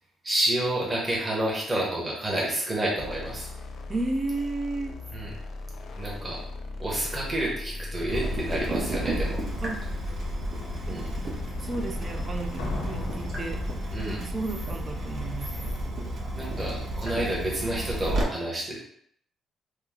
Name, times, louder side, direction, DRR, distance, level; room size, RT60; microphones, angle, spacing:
voice 1, 0.2-3.5 5.1-5.4 6.0-6.4 6.8-9.4 10.9-11.1 13.9-14.2 16.3-18.9, right 1 dB, 15° right, -5 dB, 0.8 m, -29 dB
sound 1, 3.0-14.0, left 2 dB, 50° left, 0.4 m, -38 dB
voice 2, 3.9-5.0 9.6-9.9 10.8-13.7 14.2-15.7, right 2 dB, 30° right, 6 dB, 0.3 m, -33 dB
Water tap faucet / Drip, 8.1-18.2, right 1 dB, 45° right, 0.7 m, -32 dB
Slam, 9.4-9.5 10.1-10.5 12.6-14.5 14.7-14.8, left 2 dB, 85° left, 0.7 m, -38 dB
2.9 x 2.0 x 3.5 m, 0.66 s
cardioid pair, 140°, 0 cm